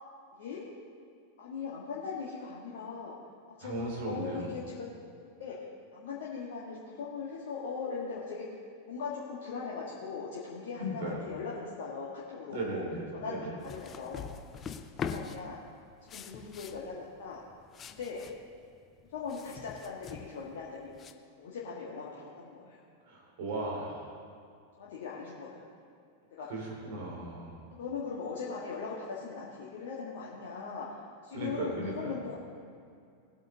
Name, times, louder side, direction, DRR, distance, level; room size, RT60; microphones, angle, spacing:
voice 1, 1.4-3.1 3.5-4.9 5.4-5.6 5.9-8.5 8.8-12.9 13.1-14.3 15.0-15.6 16.0-17.4 17.9-18.2 19.1-20.9 21.4-22.8 24.8-25.7 26.3-26.5 27.8-31.0 31.2-32.3, left 5 dB, 55° left, -5 dB, 1.8 m, -40 dB
voice 2, 3.6-4.5 10.8-11.2 12.5-13.5 23.1-24.2 26.5-27.6 31.3-32.1, right 1 dB, 50° right, -2 dB, 3.3 m, -36 dB
sound 1, 13.6-21.1, left 6 dB, 25° left, 0.7 m, -43 dB
19.5 x 8.4 x 4.0 m, 2.4 s
figure-of-eight pair, 90°, 0 cm